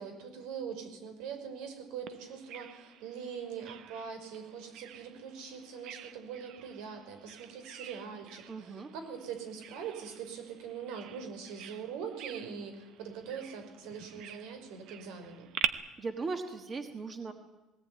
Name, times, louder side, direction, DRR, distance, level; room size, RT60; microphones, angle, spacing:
voice 1, 0.0-15.5, right 7 dB, 80° right, 6 dB, 5.5 m, -42 dB
Bird vocalization bird call bird song, 2.1-15.7, right 11 dB, 50° right, 1.0 m, -44 dB
voice 2, 8.5-8.9 15.6-17.3, right 4 dB, 20° right, 7 dB, 1.5 m, -38 dB
20.0 x 18.0 x 9.5 m, 1.1 s
cardioid pair, 170°, 0 cm